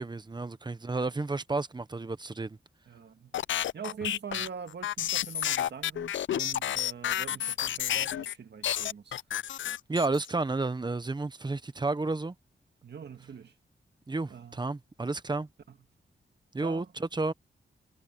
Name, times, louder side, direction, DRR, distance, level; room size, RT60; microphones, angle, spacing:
voice 1, 0.0-2.6 9.9-12.3 14.1-15.5 16.5-17.3, right 3 dB, 25° right, 1.0 m, -31 dB
voice 2, 2.9-3.4 3.7-9.2 12.8-13.5 14.3-14.6 15.7-15.8 16.6-16.9, right 6 dB, 65° right, 1.8 m, -43 dB
sound 1, 3.3-8.3 8.6-10.3, left 11 dB, 85° left, 0.4 m, -30 dB
wide cardioid pair, 130°, 19 cm